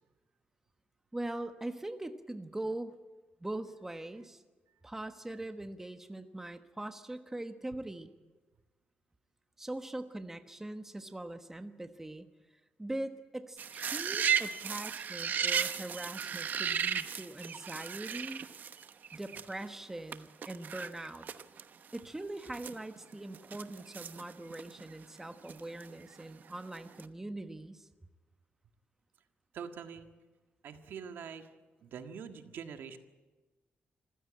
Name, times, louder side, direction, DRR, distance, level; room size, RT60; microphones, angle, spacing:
voice 1, 1.1-2.9 3.4-4.4 4.8-8.1 9.6-12.3 12.8-18.4 19.1-21.3 21.9-27.9, right 1 dB, 10° right, 8 dB, 1.2 m, -42 dB
sound 1, 13.6-19.7 20.1-20.2 20.4-21.6 21.9-22.0 22.4-24.9 25.5-26.4 26.7-27.0, right 7 dB, 55° right, 1.0 m, -35 dB
voice 2, 29.5-30.1 30.6-31.5 31.8-33.0, right 7 dB, 85° right, 7 dB, 1.7 m, -44 dB
26.5 x 15.5 x 8.8 m, 1.2 s
wide cardioid pair, 130°, 4 cm